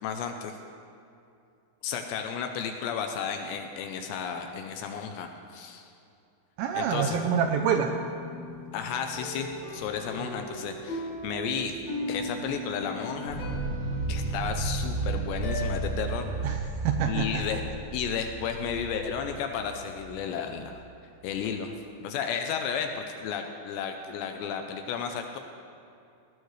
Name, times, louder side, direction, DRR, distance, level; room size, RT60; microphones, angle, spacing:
voice 1, 0.0-0.6 1.8-5.9 6.8-7.2 8.7-11.8 12.1-13.4 14.1-16.3 17.1-17.6 17.9-20.8 21.2-21.8 22.0-25.4, left 7 dB, 80° left, 5 dB, 2.7 m, -33 dB
sound 1, 6.6-16.5, left 2 dB, 40° left, 4.3 m, -38 dB
voice 2, 6.6-7.9 16.4-17.6, right 8 dB, 85° right, 5 dB, 2.5 m, -27 dB
sound 2, 13.3-20.6, right 3 dB, 55° right, 3.8 m, -33 dB
18.5 x 17.5 x 3.3 m, 2.6 s
omnidirectional pair, 5.5 m